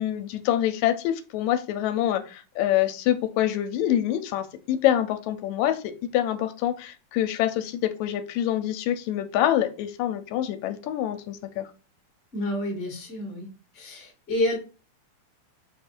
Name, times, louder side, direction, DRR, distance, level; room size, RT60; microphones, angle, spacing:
voice 1, 0.0-5.8 6.1-11.7, left 12 dB, 80° left, 9 dB, 1.8 m, -26 dB
voice 2, 12.3-13.5 13.7-14.6, left 1 dB, 30° left, 0 dB, 1.1 m, -29 dB
4.8 x 2.4 x 4.4 m, 0.34 s
omnidirectional pair, 3.3 m